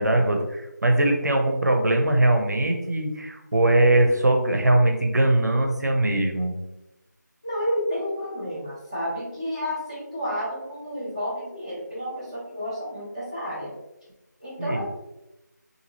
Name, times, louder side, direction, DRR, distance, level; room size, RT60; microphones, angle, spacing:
voice 1, 0.0-6.6 14.6-14.9, right 1 dB, 65° right, 4 dB, 0.5 m, -21 dB
voice 2, 7.4-13.7 14.4-14.9, equal, 20° left, -9 dB, 0.7 m, -30 dB
2.7 x 2.6 x 2.8 m, 0.94 s
figure-of-eight pair, 180°, 10 cm